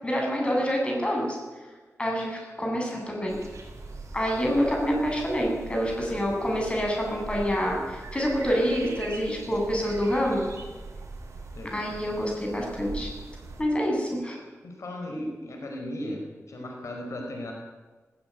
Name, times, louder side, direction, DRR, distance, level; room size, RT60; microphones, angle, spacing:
voice 1, 0.0-1.4 2.0-3.4 4.1-10.5 11.6-13.1 13.6-14.4, equal, 20° left, -1 dB, 7.7 m, -27 dB
sound 1, 3.3-13.6, right 3 dB, 70° right, 7.5 m, -41 dB
voice 2, 14.6-17.5, left 1 dB, 75° left, 2 dB, 4.7 m, -36 dB
18.5 x 18.5 x 9.3 m, 1.3 s
wide cardioid pair, 120°, 5 cm